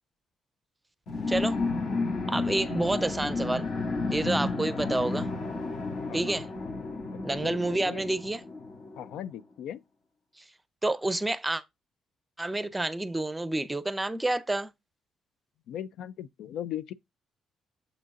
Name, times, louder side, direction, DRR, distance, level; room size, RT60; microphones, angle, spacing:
sound 1, 1.1-9.2, left 3 dB, 60° left, 1.6 m, -32 dB
voice 1, 1.3-1.6 2.3-3.7 4.1-5.3 6.1-6.5 7.2-8.4 10.4-10.5 10.8-11.6 12.4-14.7, right 2 dB, 10° right, 0.6 m, -29 dB
voice 2, 7.3-8.0 9.0-9.8 15.7-16.9, left 10 dB, 80° left, 0.3 m, -38 dB
6.9 x 3.8 x 3.7 m
cardioid pair, 90°, 0 cm